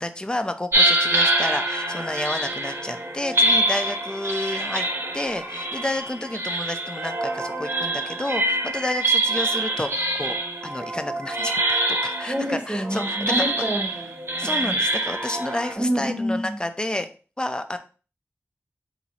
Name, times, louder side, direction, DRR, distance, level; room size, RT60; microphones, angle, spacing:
voice 1, 0.0-4.9 5.1-10.3 10.6-13.7 14.4-17.1 17.4-17.8, left 1 dB, 20° left, 8 dB, 0.4 m, -30 dB
sound 1, 0.7-15.7, right 1 dB, 55° right, 0.8 m, -25 dB
voice 2, 12.3-14.8 15.7-16.6, equal, 25° right, -1 dB, 1.1 m, -28 dB
2.9 x 2.6 x 4.1 m, 0.36 s
wide cardioid pair, 80°, 5 cm